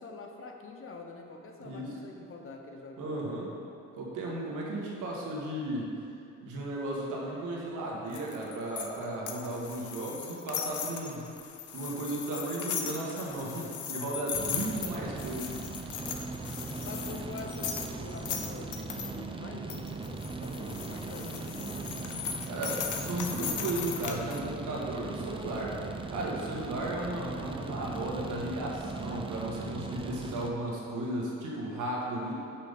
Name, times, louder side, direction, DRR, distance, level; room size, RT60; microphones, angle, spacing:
voice 1, 0.0-3.5 14.5-15.0 16.8-22.0, left 3 dB, 45° left, 2 dB, 1.0 m, -45 dB
voice 2, 3.0-3.5 3.9-5.9 6.4-11.3 11.7-15.6 22.5-25.8 26.1-32.3, right 1 dB, 85° right, -3 dB, 1.6 m, -35 dB
sound 1, 8.1-19.1 19.7-24.4, left 8 dB, 75° left, 0.7 m, -38 dB
sound 2, 14.3-30.5, right 3 dB, 15° right, 0.5 m, -39 dB
6.0 x 5.7 x 5.3 m, 2.6 s
cardioid pair, 90°, 30 cm